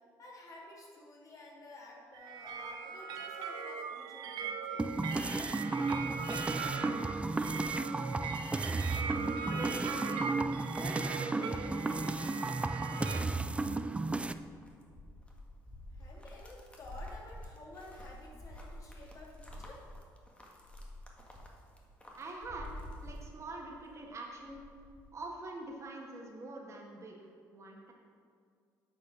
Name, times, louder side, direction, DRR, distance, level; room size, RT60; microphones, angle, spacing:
voice 1, 0.2-4.9 15.9-19.9, left 1 dB, 45° left, -3 dB, 2.5 m, -52 dB
sound 1, 2.1-13.2, right 5 dB, 80° right, 0.8 m, -40 dB
sound 2, 4.8-14.3, right 3 dB, 15° right, 0.4 m, -34 dB
voice 2, 9.4-13.8 22.1-22.7 23.0-24.7 25.1-27.9, right 2 dB, 40° right, -1 dB, 1.9 m, -45 dB
sound 3, 14.4-23.9 24.2-25.1, left 1 dB, 15° left, 1.6 m, -49 dB
8.4 x 5.4 x 6.0 m, 2.1 s
supercardioid pair, 80°, 8 cm